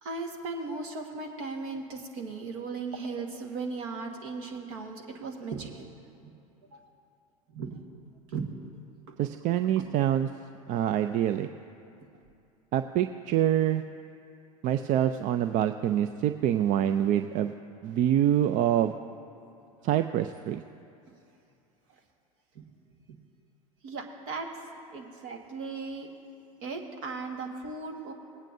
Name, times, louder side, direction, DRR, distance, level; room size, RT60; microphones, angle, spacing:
voice 1, 0.0-5.8 6.7-6.9 7.5-7.8 8.3-8.5 9.1-9.2 9.7-9.9 22.5-22.6 23.1-23.2 23.8-24.5 24.9-26.1 26.6-28.1, right 4 dB, 65° right, 3 dB, 1.6 m, -37 dB
voice 2, 9.2-10.3 10.7-11.5 12.7-13.8 14.6-17.5 17.8-19.0 19.8-20.6, right 11 dB, 45° right, 9 dB, 0.4 m, -25 dB
19.5 x 9.0 x 2.7 m, 2.7 s
hypercardioid pair, 85°, 18 cm